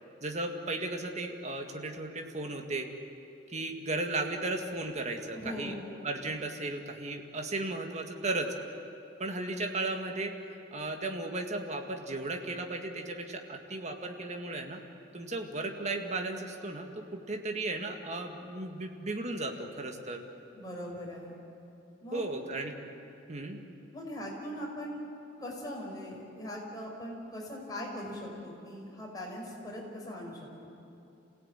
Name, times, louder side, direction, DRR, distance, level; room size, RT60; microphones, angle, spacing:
voice 1, 0.2-2.9 3.5-5.7 6.0-8.5 9.2-10.3 10.7-14.8 15.1-20.2 22.1-22.7 23.3-23.6, right 2 dB, 40° right, 4 dB, 2.0 m, -35 dB
voice 2, 5.3-6.0 20.5-21.4 22.0-22.3 23.9-25.0 25.4-30.7, equal, 20° left, -2 dB, 5.5 m, -40 dB
28.0 x 17.0 x 9.1 m, 2.7 s
head